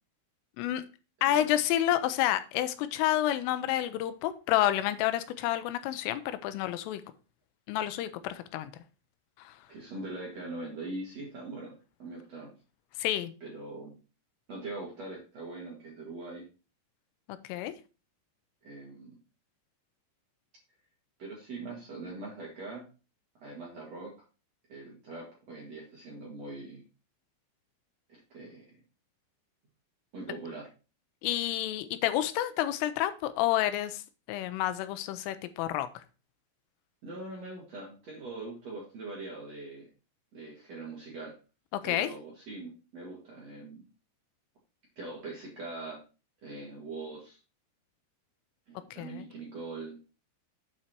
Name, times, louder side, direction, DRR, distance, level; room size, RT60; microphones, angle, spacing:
voice 1, 1.2-7.0 7.7-8.7 9.4-9.6 13.0-13.3 17.5-17.7 31.2-34.0 34.3-35.9 41.8-42.1 48.9-49.3, left 13 dB, 85° left, 3.1 m, -29 dB
voice 2, 9.7-11.7 12.0-12.5 13.4-14.0 14.5-16.4 18.6-19.1 21.2-22.8 23.4-24.1 24.7-26.8 28.1-28.6 30.1-30.7 37.0-39.9 40.3-41.4 41.8-43.8 45.0-46.0 46.4-47.4 48.7-50.0, right 2 dB, 45° right, 2.3 m, -42 dB
8.2 x 5.7 x 4.4 m
omnidirectional pair, 5.8 m